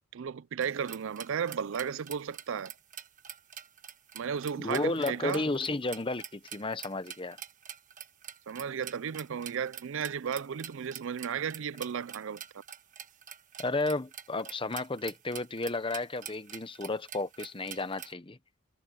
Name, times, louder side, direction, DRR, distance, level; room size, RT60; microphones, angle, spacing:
voice 1, 0.1-2.7 4.1-5.5 8.5-12.4, right 7 dB, 60° right, 0.4 m, -34 dB
sound 1, 0.6-18.1, right 9 dB, 35° right, 1.4 m, -46 dB
voice 2, 4.6-7.4 13.6-18.4, left 2 dB, 25° left, 0.9 m, -33 dB
head